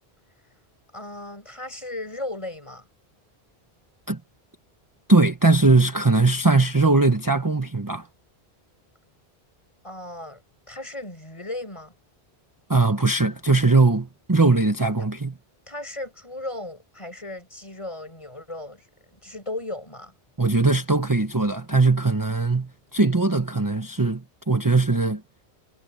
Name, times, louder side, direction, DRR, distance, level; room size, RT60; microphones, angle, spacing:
voice 1, 0.9-2.9 9.8-10.4 10.7-11.9 15.7-20.1, left 2 dB, 30° left, 6.9 m, -36 dB
voice 2, 5.1-8.1 12.7-15.4 20.4-25.2, right 3 dB, 20° right, 1.0 m, -20 dB
omnidirectional pair, 1.1 m